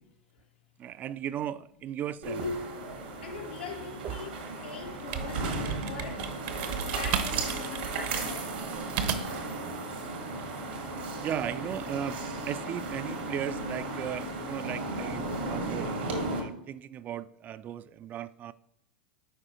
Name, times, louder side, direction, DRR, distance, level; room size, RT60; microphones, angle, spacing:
voice 1, 0.8-2.4 4.0-4.1 11.2-15.9 16.3-18.5, right 10 dB, 35° right, 0.3 m, -36 dB
sound 1, 2.2-16.4, right 2 dB, 85° right, 1.7 m, -35 dB
voice 2, 3.2-4.3 4.6-6.3 6.8-8.6, left 5 dB, 90° left, 1.4 m, -42 dB
sound 2, 5.0-9.5, right 7 dB, 60° right, 0.8 m, -34 dB
10.0 x 4.6 x 3.0 m
hypercardioid pair, 100°, 5 cm